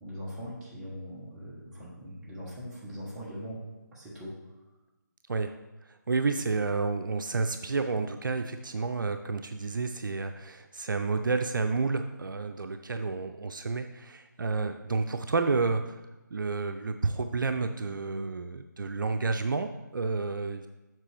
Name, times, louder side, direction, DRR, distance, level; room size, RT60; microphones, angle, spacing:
voice 1, 0.0-3.6 3.9-4.3, equal, 5° right, -7 dB, 1.0 m, -41 dB
voice 2, 5.8-16.0 16.3-20.7, right 4 dB, 75° right, 7 dB, 0.5 m, -30 dB
7.4 x 5.9 x 3.3 m, 1.1 s
figure-of-eight pair, 160°, 11 cm